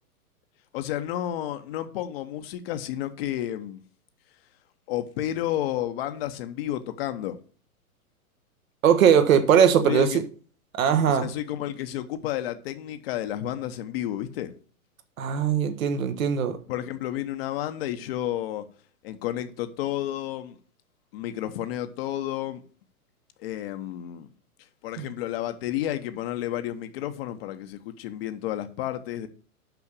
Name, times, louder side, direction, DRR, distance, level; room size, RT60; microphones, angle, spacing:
voice 1, 0.7-3.8 4.9-7.4 9.8-10.2 11.1-14.5 16.7-18.6 19.0-20.6 21.1-22.6 23.4-24.3 24.8-29.3, left 12 dB, 40° left, 1.0 m, -31 dB
voice 2, 8.8-10.2 10.8-11.3 15.2-16.6 25.0-25.1, right 8 dB, 60° right, 1.3 m, -20 dB
6.0 x 5.6 x 6.8 m
hypercardioid pair, 115°, 44 cm